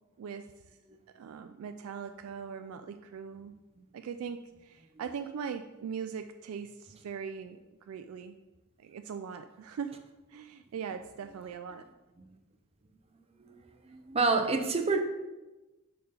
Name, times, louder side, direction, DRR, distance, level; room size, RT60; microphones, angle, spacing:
voice 1, 0.2-0.8 1.1-3.6 3.9-8.4 8.8-10.0 10.3-11.8, right 6 dB, 75° right, 8 dB, 0.3 m, -40 dB
voice 2, 13.8-15.0, right 3 dB, 30° right, 5 dB, 0.6 m, -28 dB
5.4 x 4.4 x 5.0 m, 1.1 s
head